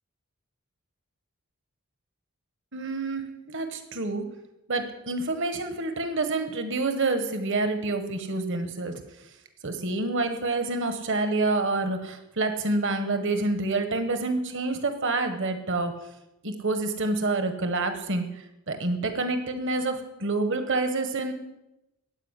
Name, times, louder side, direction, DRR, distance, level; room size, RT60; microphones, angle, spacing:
voice 1, 2.7-4.3 4.7-8.9 9.6-15.9 16.4-18.3 18.7-21.3, right 3 dB, 55° right, 7 dB, 1.5 m, -27 dB
15.5 x 5.3 x 9.8 m, 0.91 s
head